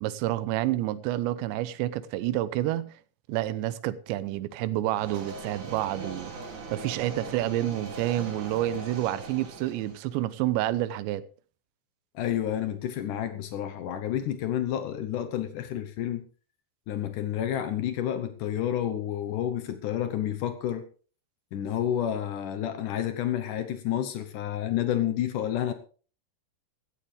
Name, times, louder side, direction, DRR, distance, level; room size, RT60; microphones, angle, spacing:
voice 1, 0.0-2.9 3.3-6.3 6.7-11.2, right 14 dB, 85° right, 3.0 m, -29 dB
sound 1, 4.9-10.1, right 3 dB, 50° right, 3.6 m, -40 dB
voice 2, 12.1-16.2 16.9-20.8 21.5-25.7, left 11 dB, 85° left, 1.8 m, -30 dB
16.5 x 13.5 x 3.3 m
omnidirectional pair, 5.2 m